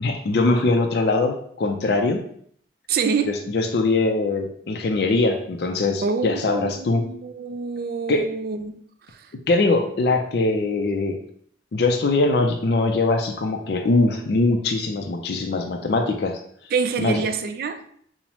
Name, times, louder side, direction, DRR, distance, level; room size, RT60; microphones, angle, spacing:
voice 1, 0.0-2.2 3.5-7.0 8.1-8.2 9.5-11.2 11.7-16.4 17.0-17.2, left 3 dB, 55° left, 4 dB, 0.4 m, -22 dB
voice 2, 2.9-3.4 6.0-9.3 16.7-17.8, right 5 dB, 50° right, 8 dB, 0.3 m, -27 dB
5.4 x 2.0 x 2.9 m, 0.63 s
head